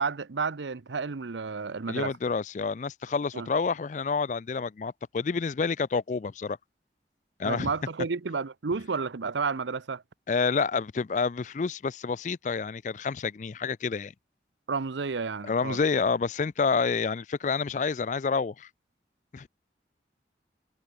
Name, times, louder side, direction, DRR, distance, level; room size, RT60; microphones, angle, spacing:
voice 1, 0.0-2.2 3.3-3.5 7.4-10.0 14.7-15.8, right 4 dB, 85° right, 0.7 m, -31 dB
voice 2, 1.9-6.6 7.4-7.7 10.3-14.1 15.4-18.7 19.3-19.5, left 5 dB, 40° left, 0.4 m, -28 dB
head